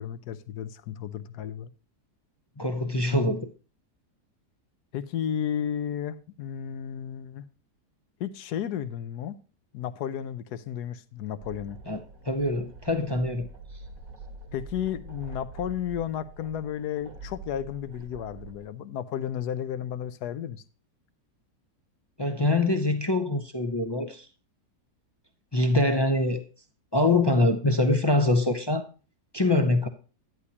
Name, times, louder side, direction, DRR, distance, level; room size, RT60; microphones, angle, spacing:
voice 1, 0.0-1.7 4.9-7.5 8.2-9.4 9.7-11.8 14.5-20.6, left 9 dB, 75° left, 1.3 m, -33 dB
voice 2, 2.6-3.5 11.9-12.0 12.2-13.5 22.2-24.3 25.5-26.4 26.9-28.9 29.3-29.9, left 2 dB, 35° left, 0.4 m, -24 dB
sound 1, 11.4-18.7, right 3 dB, 60° right, 1.6 m, -45 dB
11.0 x 9.7 x 2.9 m
omnidirectional pair, 1.8 m